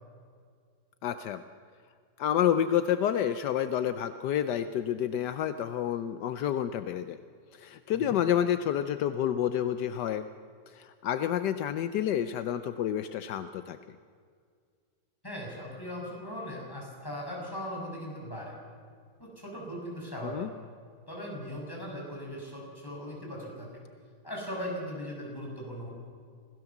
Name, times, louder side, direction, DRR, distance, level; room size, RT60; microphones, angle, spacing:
voice 1, 1.0-1.4 2.2-7.2 7.5-10.3 10.7-13.8 20.2-20.5, left 10 dB, 75° left, 11 dB, 1.3 m, -29 dB
voice 2, 15.2-18.6 19.2-20.5 21.1-23.7 24.2-25.9, equal, 10° left, -2 dB, 6.2 m, -39 dB
26.0 x 16.5 x 7.2 m, 2.1 s
omnidirectional pair, 1.9 m